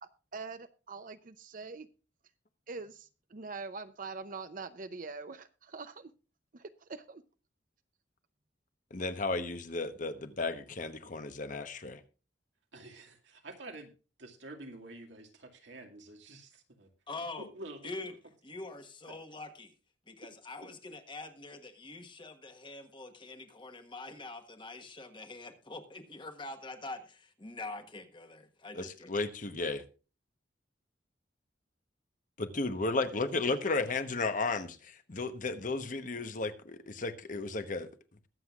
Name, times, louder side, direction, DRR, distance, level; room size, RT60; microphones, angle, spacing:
voice 1, 0.0-1.9 2.7-6.1 6.5-7.2, right 4 dB, 45° right, 0.6 m, -44 dB
voice 2, 8.9-12.0 28.7-29.8 32.4-37.9, left 3 dB, 45° left, 1.1 m, -34 dB
voice 3, 12.7-13.9 14.2-16.9 17.4-18.2 19.1-19.2 20.6-20.7, right 2 dB, 85° right, 2.2 m, -48 dB
voice 4, 17.1-17.5 17.8-18.1 18.4-19.7 20.1-29.3, left 2 dB, 25° left, 1.4 m, -44 dB
21.5 x 7.8 x 2.4 m
head